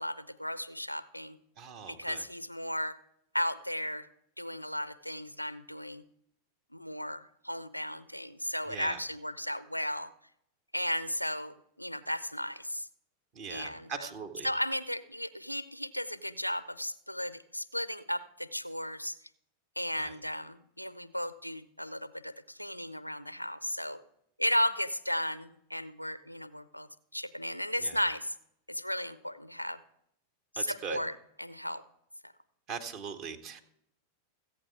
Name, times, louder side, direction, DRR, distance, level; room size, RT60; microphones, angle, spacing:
voice 1, 0.0-1.4 1.9-3.0 3.3-4.1 4.4-6.0 6.7-10.1 10.7-12.9 13.5-14.1 14.4-19.2 19.8-24.0 24.4-28.3 28.7-29.8 30.5-31.8, equal, 90° left, 15 dB, 0.5 m, -35 dB
voice 2, 1.6-2.2 8.7-9.0 13.3-14.5 20.0-20.1 27.8-27.9 30.6-31.0 32.7-33.6, right 6 dB, 40° right, 6 dB, 1.4 m, -40 dB
14.5 x 8.6 x 4.7 m, 0.74 s
figure-of-eight pair, 90°, 0 cm